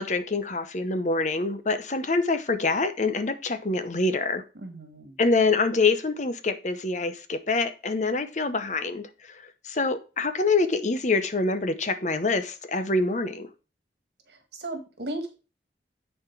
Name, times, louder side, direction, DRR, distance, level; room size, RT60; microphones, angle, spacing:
voice 1, 0.0-4.4 5.2-13.5, left 3 dB, 45° left, 10 dB, 0.8 m, -26 dB
voice 2, 4.6-5.2 14.6-15.4, right 1 dB, 70° right, 6 dB, 1.8 m, -35 dB
9.8 x 4.4 x 4.6 m, 0.32 s
head